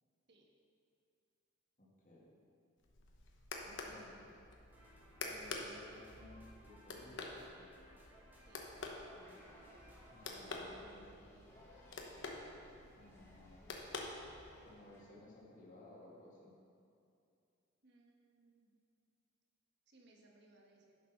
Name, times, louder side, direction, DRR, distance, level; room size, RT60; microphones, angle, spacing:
voice 1, 1.8-2.3 3.6-4.4 5.2-7.7 10.1-11.3 13.0-13.7 14.6-16.5, left 1 dB, 40° left, -5 dB, 2.1 m, -58 dB
sound 1, 2.8-14.7, left 3 dB, 65° left, 1.1 m, -49 dB
sound 2, 4.7-10.6, right 1 dB, 10° right, 1.4 m, -63 dB
voice 2, 8.5-8.8 17.8-18.7 19.9-21.0, right 2 dB, 55° right, 0 dB, 1.4 m, -66 dB
sound 3, 9.1-15.0, left 1 dB, 10° left, 1.4 m, -62 dB
11.0 x 6.5 x 5.7 m, 2.5 s
head